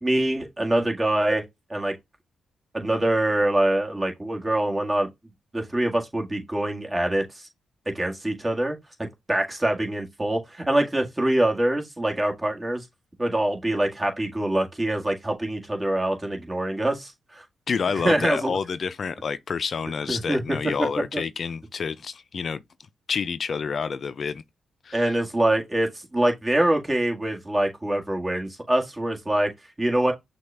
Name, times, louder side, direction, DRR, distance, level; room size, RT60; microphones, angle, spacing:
voice 1, 0.0-1.4 1.7-1.9 2.7-5.1 5.5-7.5 7.9-8.8 9.3-12.9 13.2-17.4 18.0-18.6 20.1-20.6 21.1-21.2 24.9-29.5 29.8-30.1, right 1 dB, 20° right, 1.7 m, -24 dB
voice 2, 17.7-22.6 23.1-24.4 24.8-25.1, left 5 dB, 55° left, 0.4 m, -28 dB
6.3 x 2.4 x 3.3 m
supercardioid pair, 55°, 0 cm